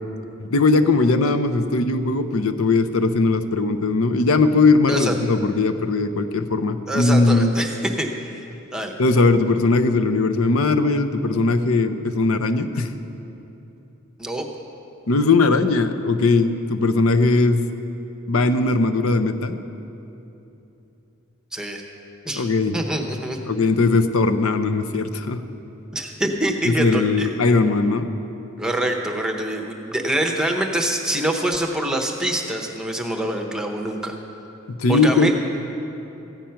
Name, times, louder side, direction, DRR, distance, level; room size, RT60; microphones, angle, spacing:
voice 1, 0.5-7.5 9.0-12.9 15.1-17.7 18.3-19.6 22.4-22.7 23.5-25.4 26.7-28.1 34.7-35.3, left 3 dB, 70° left, 9 dB, 0.7 m, -19 dB
voice 2, 6.9-8.1 8.7-8.9 14.2-14.5 21.5-21.8 22.2-22.5 22.7-23.4 25.9-27.3 28.6-34.1 34.9-35.3, right 1 dB, 5° right, 3 dB, 0.8 m, -25 dB
15.0 x 9.0 x 5.7 m, 2.9 s
head